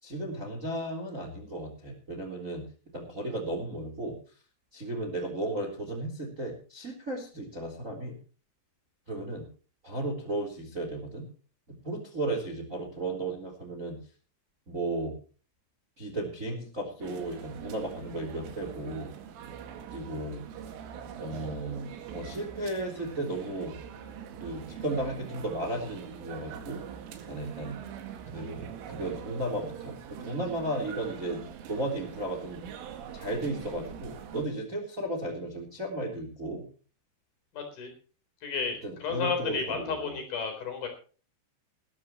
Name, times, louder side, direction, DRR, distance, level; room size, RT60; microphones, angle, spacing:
voice 1, 0.0-2.6 2.9-4.2 4.7-8.1 9.1-9.5 9.8-11.3 11.7-14.0 14.7-15.1 16.0-19.1 19.9-20.4 21.2-23.7 24.4-26.8 27.3-27.8 28.3-32.6 33.1-36.7 38.8-40.1, right 1 dB, 20° right, 3 dB, 3.0 m, -35 dB
sound 1, 17.0-34.5, right 8 dB, 80° right, 4.5 m, -43 dB
voice 2, 37.5-37.9 38.4-40.9, left 5 dB, 50° left, 5 dB, 5.5 m, -32 dB
20.5 x 13.0 x 3.1 m, 0.38 s
omnidirectional pair, 5.7 m